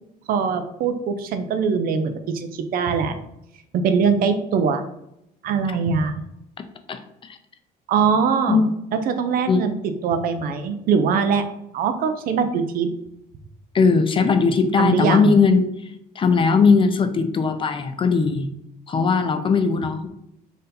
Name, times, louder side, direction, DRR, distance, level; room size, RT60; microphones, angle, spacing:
voice 1, 0.3-3.1 3.7-4.8 5.4-6.2 7.9-8.6 8.9-11.4 11.7-12.9 14.8-15.4, right 6 dB, 60° right, 8 dB, 0.5 m, -22 dB
voice 2, 6.9-7.4 8.5-8.7 9.5-9.6 13.7-15.7 16.2-18.5 18.9-20.1, left 4 dB, 30° left, 8 dB, 0.5 m, -19 dB
4.0 x 2.7 x 3.9 m, 0.81 s
cardioid pair, 110°, 17 cm